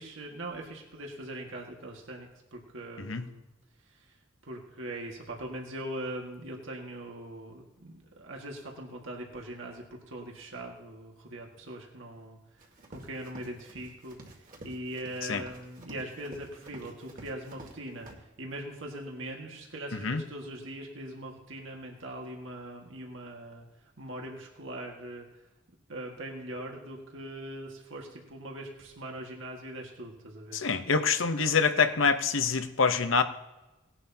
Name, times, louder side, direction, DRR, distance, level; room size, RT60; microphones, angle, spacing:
voice 1, 0.0-3.4 3.9-4.2 4.4-12.6 12.9-23.7 24.0-25.3 25.9-30.6 31.4-31.7, right 1 dB, 85° right, 1 dB, 1.8 m, -41 dB
Run, 12.6-17.8 18.0-18.1, right 1 dB, 45° right, 2.1 m, -49 dB
voice 2, 30.5-33.2, left 5 dB, 85° left, 8 dB, 0.9 m, -25 dB
18.5 x 11.0 x 2.8 m, 1.0 s
head